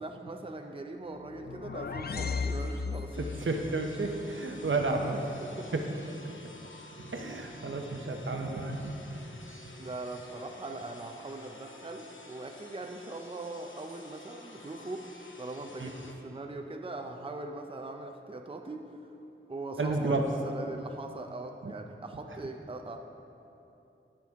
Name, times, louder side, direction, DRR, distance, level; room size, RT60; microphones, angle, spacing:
voice 1, 0.0-3.2 5.4-5.7 9.8-16.0 16.2-19.1 19.5-20.2 20.4-23.0, right 2 dB, 25° right, 4 dB, 0.5 m, -41 dB
sound 1, 1.2-3.5, left 4 dB, 50° left, 0.4 m, -35 dB
sound 2, 3.1-16.1, left 2 dB, 65° left, 0.9 m, -50 dB
voice 2, 3.2-5.2 5.7-5.8 6.2-6.4 7.0-9.2 15.8-15.9 19.8-20.3 21.6-21.7 22.3-22.4, right 3 dB, 70° right, 3 dB, 0.8 m, -32 dB
15.0 x 6.1 x 3.6 m, 2.9 s
wide cardioid pair, 65°, 21 cm